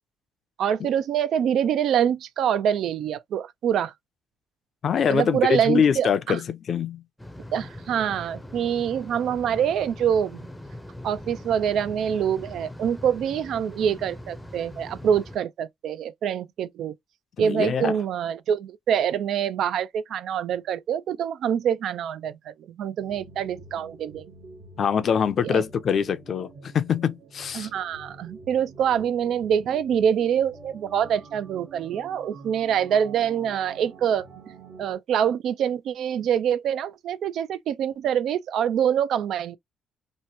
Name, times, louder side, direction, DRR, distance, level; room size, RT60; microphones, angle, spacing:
voice 1, 0.6-3.9 5.1-6.4 7.5-10.4 11.0-16.9 17.4-24.3 25.4-25.6 27.5-34.3 34.8-39.6, right 8 dB, 75° right, 0.3 m, -25 dB
voice 2, 4.8-7.0 17.4-18.0 24.8-27.7, left 7 dB, 55° left, 0.5 m, -24 dB
sound 1, 7.2-15.4, left 1 dB, 5° left, 0.5 m, -41 dB
sound 2, 23.0-34.9, right 4 dB, 55° right, 1.0 m, -47 dB
3.0 x 2.1 x 2.7 m
cardioid pair, 90°, 0 cm